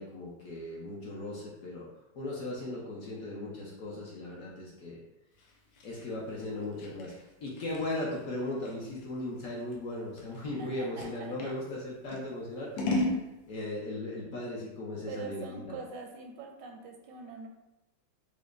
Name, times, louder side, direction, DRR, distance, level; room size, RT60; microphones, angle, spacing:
voice 1, 0.0-1.9 2.1-5.0 5.8-7.1 7.4-13.0 13.5-15.8, left 1 dB, 60° left, -4 dB, 1.0 m, -37 dB
Scissors, 5.4-11.6 12.1-13.2, left 2 dB, 85° left, 1.3 m, -36 dB
voice 2, 10.6-11.6 15.1-17.5, right 4 dB, 80° right, 2 dB, 1.2 m, -44 dB
5.0 x 2.1 x 2.4 m, 0.94 s
omnidirectional pair, 1.9 m